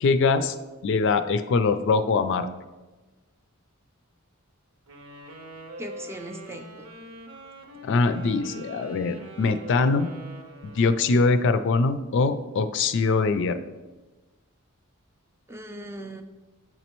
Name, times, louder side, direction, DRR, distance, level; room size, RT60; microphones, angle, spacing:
voice 1, 0.0-0.5 0.8-2.5 7.8-10.1 10.8-13.6, left 4 dB, 60° left, 10 dB, 0.3 m, -22 dB
sound 1, 4.9-11.4, right 1 dB, 80° right, 0.8 m, -44 dB
voice 2, 5.8-6.9 15.5-16.2, right 1 dB, 10° right, 6 dB, 0.3 m, -38 dB
7.7 x 4.2 x 3.0 m, 1.2 s
head